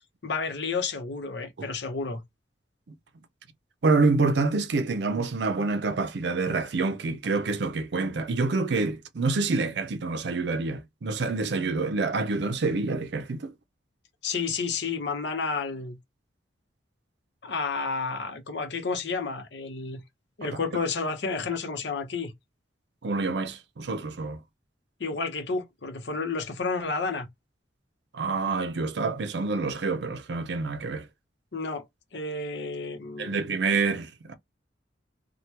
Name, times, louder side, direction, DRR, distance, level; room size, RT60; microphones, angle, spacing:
voice 1, 0.2-2.2 14.2-16.0 17.4-20.0 20.4-22.3 25.0-27.3 31.5-31.9 32.1-33.5, left 4 dB, 70° left, 0.8 m, -31 dB
voice 2, 3.8-13.5 20.4-20.5 23.0-24.4 28.1-31.1 33.2-34.3, right 3 dB, 70° right, 0.5 m, -27 dB
2.9 x 2.2 x 3.2 m
head